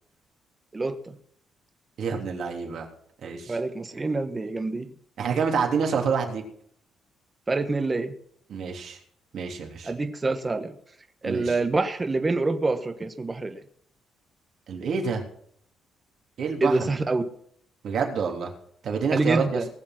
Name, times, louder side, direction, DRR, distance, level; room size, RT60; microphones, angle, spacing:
voice 1, 0.7-1.2 3.5-4.9 7.5-8.1 9.8-10.7 11.2-13.6 16.6-17.2 19.1-19.6, right 3 dB, 25° right, 7 dB, 1.3 m, -26 dB
voice 2, 2.0-2.9 3.2-3.5 5.2-6.4 8.5-9.0 9.3-9.9 11.2-11.6 14.7-15.2 16.4-17.0 17.8-18.5 18.8-19.6, right 5 dB, 65° right, 1 dB, 3.3 m, -27 dB
19.5 x 7.4 x 6.0 m, 0.64 s
cardioid pair, 90°, 0 cm